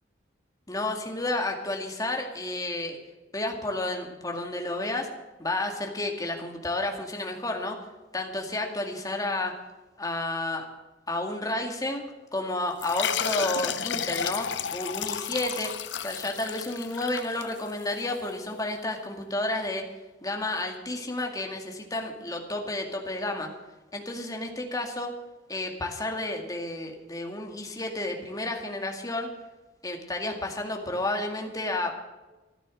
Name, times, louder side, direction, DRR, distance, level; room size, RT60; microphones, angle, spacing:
voice 1, 0.7-3.0 3.3-5.1 5.4-7.8 8.1-9.6 10.0-10.7 11.1-12.0 12.3-23.5 23.9-25.1 25.5-29.3 29.8-31.9, left 2 dB, 20° left, 2 dB, 2.1 m, -31 dB
sound 1, 12.8-17.9, left 8 dB, 70° left, 0.7 m, -32 dB
14.0 x 12.0 x 6.3 m, 1.2 s
head